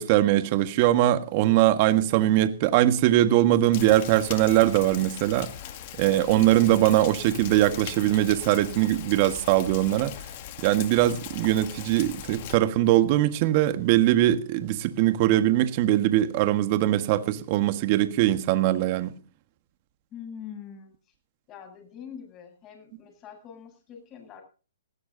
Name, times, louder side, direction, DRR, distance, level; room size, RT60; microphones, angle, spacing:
voice 1, 0.0-5.5 6.0-10.1 10.6-19.1, right 14 dB, 40° right, 1.5 m, -21 dB
Rain, 3.7-12.5, left 11 dB, 45° left, 2.1 m, -40 dB
voice 2, 20.1-20.9 21.5-24.4, left 8 dB, 25° left, 7.7 m, -43 dB
19.5 x 16.0 x 2.8 m
hypercardioid pair, 135°, 0 cm